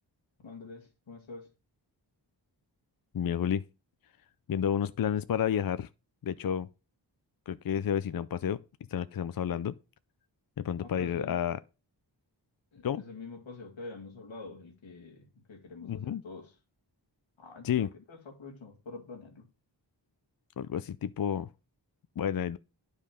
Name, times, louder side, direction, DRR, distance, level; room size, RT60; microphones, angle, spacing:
voice 1, 0.4-1.5 10.8-11.4 12.7-16.6 17.4-19.5, left 3 dB, 85° left, 2.0 m, -46 dB
voice 2, 3.1-3.6 4.5-5.9 6.2-6.7 7.5-8.6 8.9-9.7 10.6-11.6 12.8-13.0 15.8-16.2 17.6-17.9 20.6-21.5 22.2-22.6, left 9 dB, 50° left, 0.5 m, -30 dB
9.9 x 5.4 x 5.0 m
wide cardioid pair, 65°, 45 cm